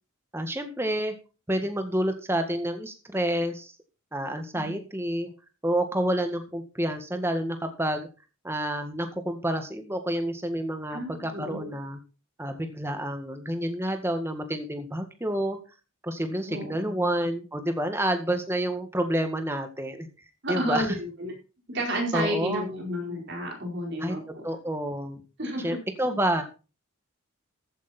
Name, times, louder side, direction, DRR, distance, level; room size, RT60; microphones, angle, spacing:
voice 1, 0.3-1.1 1.5-3.7 4.1-5.3 5.6-8.1 8.4-12.0 12.4-15.6 16.0-20.1 20.5-20.9 22.1-22.8 24.0-24.2 24.4-25.2 25.6-26.4, right 1 dB, 10° right, 6 dB, 1.9 m, -29 dB
voice 2, 10.9-11.7 16.4-17.1 20.4-21.3 21.7-24.4 25.4-25.8, equal, 55° right, 0 dB, 4.8 m, -31 dB
15.0 x 8.6 x 4.5 m, 0.33 s
head